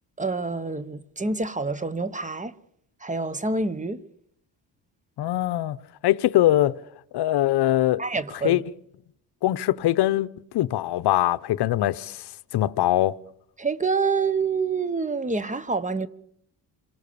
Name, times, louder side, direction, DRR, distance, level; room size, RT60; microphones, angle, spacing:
voice 1, 0.2-2.5 3.0-4.0 8.0-8.6 13.6-16.1, right 4 dB, 20° right, 1.0 m, -27 dB
voice 2, 5.2-5.8 6.0-6.8 7.1-8.0 8.4-8.6 9.4-10.3 10.5-13.2, left 14 dB, 70° left, 0.8 m, -22 dB
27.0 x 18.5 x 6.9 m
cardioid pair, 105°, 41 cm